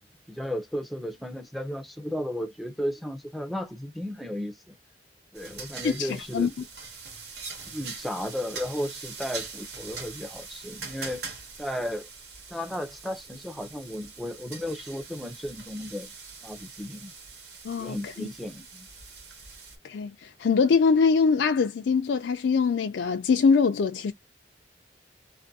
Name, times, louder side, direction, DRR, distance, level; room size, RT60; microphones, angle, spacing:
voice 1, 0.3-4.7 5.3-6.5 7.7-11.2 11.6-12.1 12.5-16.1 16.4-17.1 17.8-18.9, equal, ahead, 0.5 m, -34 dB
sound 1, 5.3-19.8, right 4 dB, 65° right, 1.1 m, -43 dB
voice 2, 17.6-18.3 19.8-24.1, left 5 dB, 85° left, 0.4 m, -23 dB
2.6 x 2.5 x 2.6 m
head